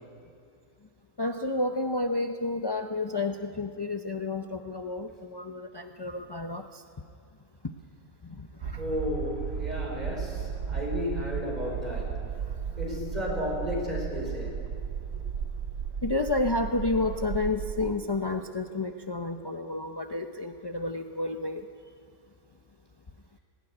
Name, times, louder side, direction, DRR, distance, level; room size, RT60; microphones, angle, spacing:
voice 1, 1.2-6.8 8.2-8.8 16.0-21.7, left 2 dB, 40° left, 5 dB, 0.3 m, -31 dB
sound 1, 8.6-18.0, right 7 dB, 60° right, 0.8 m, -34 dB
voice 2, 8.8-12.2 12.8-14.7 15.1-15.2, left 1 dB, 25° right, -1 dB, 5.2 m, -33 dB
18.5 x 18.0 x 9.8 m, 2.4 s
omnidirectional pair, 1.6 m